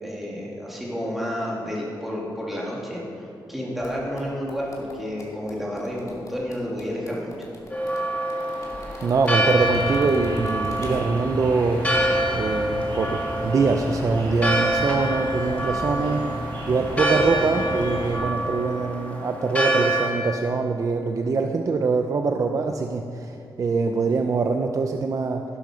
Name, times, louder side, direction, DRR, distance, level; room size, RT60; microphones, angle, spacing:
voice 1, 0.0-3.0 3.5-7.3, equal, ahead, -5 dB, 3.0 m, -30 dB
sound 1, 3.8-11.4 11.7-11.8, left 2 dB, 45° left, 2.5 m, -46 dB
Church bell, 7.7-20.1, right 1 dB, 15° left, 2.2 m, -26 dB
voice 2, 9.0-11.9 12.3-16.3 16.7-25.4, right 4 dB, 45° right, 4 dB, 0.6 m, -24 dB
sound 2, 9.4-18.1, right 1 dB, 85° right, 4.3 m, -33 dB
16.5 x 8.9 x 6.3 m, 2.6 s
wide cardioid pair, 170°, 8 cm